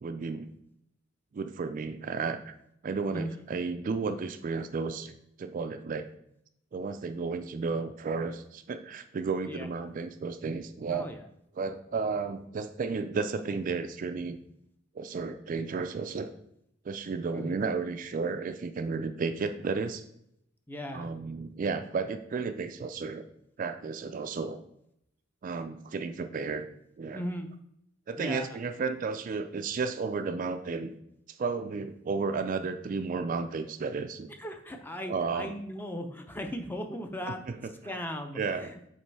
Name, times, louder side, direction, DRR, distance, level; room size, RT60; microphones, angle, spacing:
voice 1, 0.0-0.5 1.3-2.5 2.8-6.1 6.7-11.1 11.6-14.4 15.0-16.3 16.9-20.0 20.9-23.2 23.6-24.6 25.4-26.7 27.0-27.2 28.1-30.9 31.3-34.3 35.1-35.5 38.4-38.7, right 4 dB, 40° right, 9 dB, 0.3 m, -33 dB
voice 2, 10.9-11.3 17.3-17.5 20.7-21.1 27.1-27.5 28.2-28.6 34.4-37.4 37.8-38.8, equal, 10° left, 5 dB, 0.5 m, -37 dB
7.3 x 3.1 x 4.7 m, 0.76 s
head